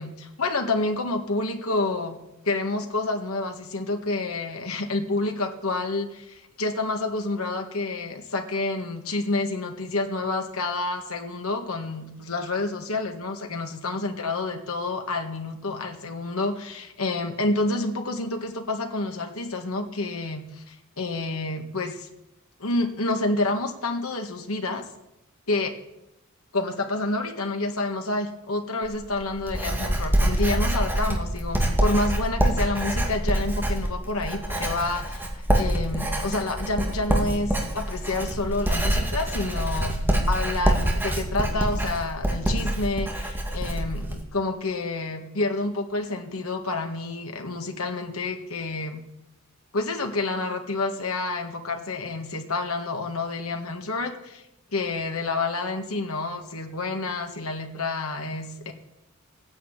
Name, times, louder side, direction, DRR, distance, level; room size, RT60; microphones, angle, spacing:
voice 1, 0.0-2.2 2.4-22.1 22.6-24.8 25.5-25.8 26.5-35.2 35.5-40.0 40.3-49.0 49.7-54.4 54.7-58.7, left 2 dB, 80° left, 4 dB, 1.7 m, -29 dB
Writing, 28.8-44.2, right 1 dB, 10° right, 2.3 m, -25 dB
15.5 x 10.0 x 8.8 m, 0.91 s
head